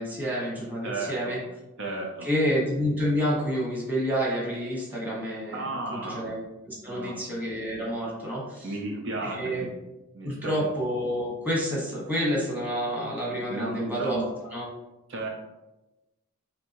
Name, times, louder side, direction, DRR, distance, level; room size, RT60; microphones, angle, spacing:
voice 1, 0.0-1.4 2.2-6.4 6.7-8.7 9.2-9.7 10.2-14.2 14.5-14.7, equal, 10° right, -6 dB, 1.3 m, -29 dB
voice 2, 0.8-1.3 1.8-2.3 5.5-6.3 6.8-7.2 8.6-9.7 10.1-10.7 13.5-14.3 15.1-15.3, right 2 dB, 55° right, 0 dB, 0.6 m, -34 dB
5.8 x 2.7 x 3.0 m, 1.0 s
head